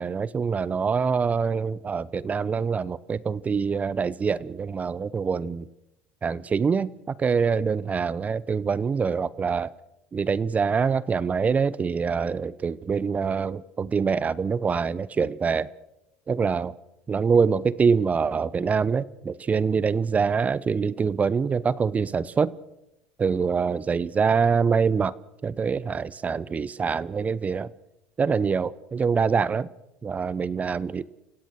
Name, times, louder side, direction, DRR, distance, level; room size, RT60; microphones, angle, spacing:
voice 1, 0.0-5.7 6.2-9.7 10.1-15.7 16.3-16.7 17.1-22.5 23.2-25.1 25.4-27.7 28.2-29.7 30.0-31.0, right 5 dB, 25° right, 0.8 m, -25 dB
29.0 x 16.0 x 6.2 m
supercardioid pair, 100°, 5 cm